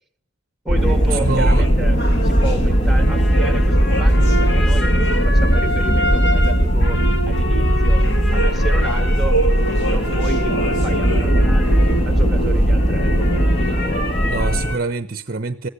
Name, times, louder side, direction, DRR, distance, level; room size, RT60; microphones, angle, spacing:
voice 1, 0.6-4.9 5.2-9.4 9.9-13.4, right 2 dB, ahead, 9 dB, 2.2 m, -32 dB
sound 1, 0.7-14.7, equal, 25° left, 1.3 m, -17 dB
sound 2, 0.8-14.8, equal, 50° left, 2.2 m, -25 dB
voice 2, 1.2-1.6 14.2-15.7, right 3 dB, 40° right, 12 dB, 0.8 m, -25 dB
21.5 x 16.0 x 8.3 m, 0.66 s
head